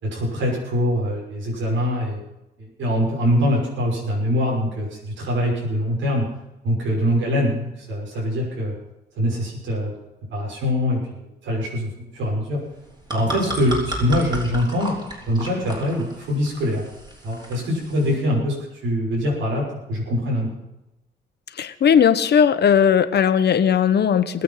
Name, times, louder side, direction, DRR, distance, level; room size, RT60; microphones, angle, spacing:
voice 1, 0.0-2.2 2.6-6.3 6.6-8.7 9.2-9.9 10.3-12.6 13.1-14.9 15.3-16.8 17.2-20.5, equal, 70° right, -3 dB, 6.3 m, -23 dB
sound 1, 12.7-18.2, right 1 dB, 20° right, 6.1 m, -33 dB
voice 2, 21.6-24.4, left 8 dB, 55° left, 10 dB, 1.3 m, -17 dB
21.0 x 8.7 x 5.8 m, 0.94 s
cardioid pair, 90°, 20 cm